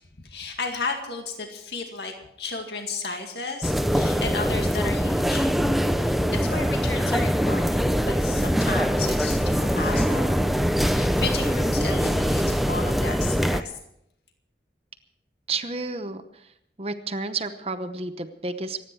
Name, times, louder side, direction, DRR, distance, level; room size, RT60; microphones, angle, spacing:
voice 1, 0.2-5.5 6.0-10.4 10.8-13.7, left 4 dB, 70° left, 3 dB, 2.1 m, -33 dB
sound 1, 3.6-13.6, equal, ahead, 0.5 m, -23 dB
voice 2, 15.5-16.5 16.8-18.8, right 3 dB, 35° right, 9 dB, 0.9 m, -31 dB
26.0 x 9.6 x 4.7 m, 0.77 s
head